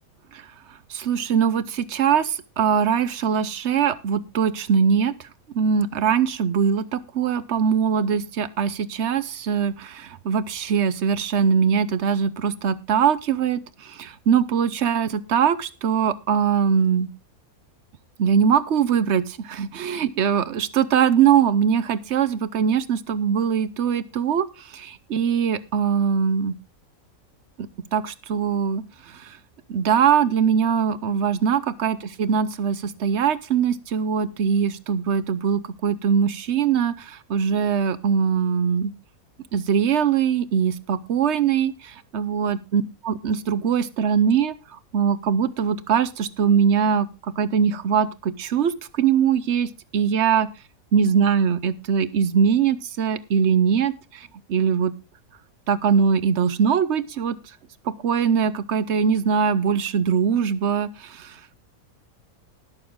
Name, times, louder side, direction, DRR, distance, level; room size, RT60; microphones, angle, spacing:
voice 1, 0.9-5.3 5.5-17.1 18.2-26.6 27.6-29.4 29.7-38.9 39.5-50.5 50.9-54.9 55.7-57.4 57.8-61.4, right 7 dB, 55° right, 16 dB, 1.0 m, -22 dB
20.0 x 6.7 x 3.6 m, 0.28 s
omnidirectional pair, 1.5 m